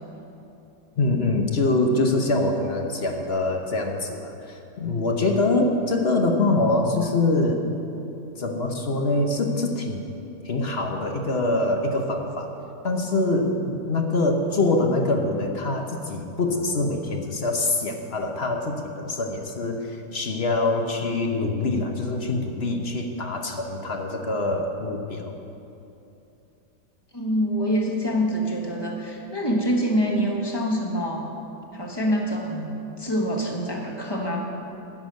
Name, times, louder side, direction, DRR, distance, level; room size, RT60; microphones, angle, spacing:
voice 1, 1.0-7.7 8.4-10.1 10.4-12.5 12.8-25.4, left 2 dB, 45° left, 3 dB, 0.9 m, -24 dB
voice 2, 27.1-31.3 31.7-34.4, equal, 15° left, 0 dB, 1.2 m, -25 dB
13.0 x 6.8 x 9.2 m, 2.8 s
omnidirectional pair, 2.1 m